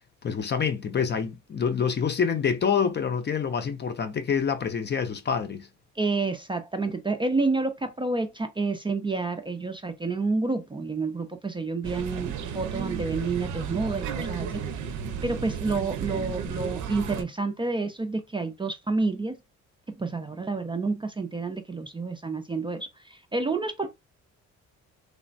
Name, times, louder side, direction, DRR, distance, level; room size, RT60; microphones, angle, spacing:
voice 1, 0.2-5.7, left 6 dB, 35° left, 0.5 m, -26 dB
voice 2, 6.0-14.8 15.2-19.4 19.9-23.9, right 3 dB, 15° right, 0.4 m, -29 dB
sound 1, 11.8-17.2, right 7 dB, 70° right, 0.6 m, -33 dB
3.2 x 2.0 x 2.5 m
cardioid pair, 90°, 30 cm